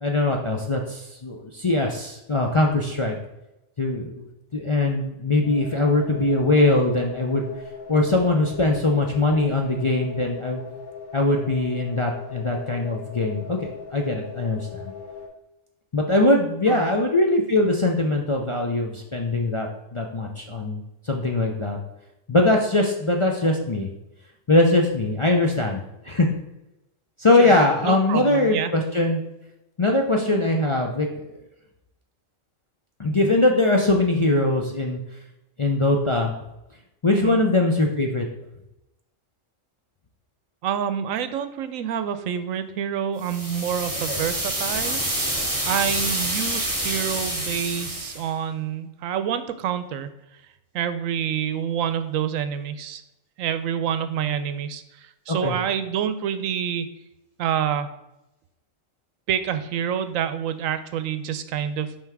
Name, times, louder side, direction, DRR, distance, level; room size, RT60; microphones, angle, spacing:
voice 1, 0.0-3.1 3.8-4.3 4.5-7.5 7.9-10.6 11.1-14.9 15.9-21.8 22.3-23.9 24.5-25.8 26.1-26.3 27.2-29.2 29.8-31.3 33.0-35.0 35.6-36.3 37.0-38.2 44.1-44.2 55.3-55.5, left 2 dB, 35° left, 0 dB, 0.5 m, -21 dB
sound 1, 5.4-15.3, left 6 dB, 65° left, 2.1 m, -39 dB
voice 2, 27.8-28.7 37.1-37.4 40.6-45.0 45.3-50.1 50.7-53.0 53.4-54.8 55.3-56.9 57.4-57.9 59.3-61.9, right 9 dB, 85° right, 11 dB, 1.0 m, -27 dB
sound 2, 43.2-48.2, right 1 dB, 15° right, 1.5 m, -27 dB
5.7 x 4.8 x 4.6 m, 0.91 s
omnidirectional pair, 1.3 m